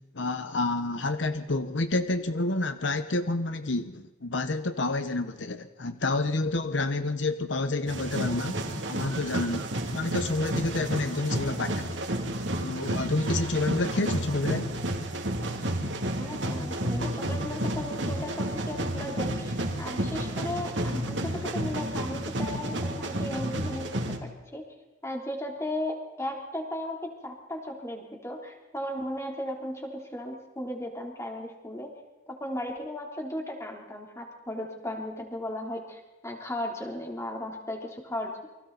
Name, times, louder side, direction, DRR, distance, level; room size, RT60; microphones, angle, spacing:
voice 1, 0.1-11.9 12.6-14.7, left 2 dB, 75° left, 9 dB, 1.1 m, -29 dB
sound 1, 7.9-24.2, right 1 dB, 75° right, 2.7 m, -31 dB
voice 2, 16.2-24.6 25.0-31.9 32.3-38.5, left 1 dB, 15° left, 1 dB, 3.5 m, -36 dB
29.0 x 24.0 x 4.1 m, 1.1 s
head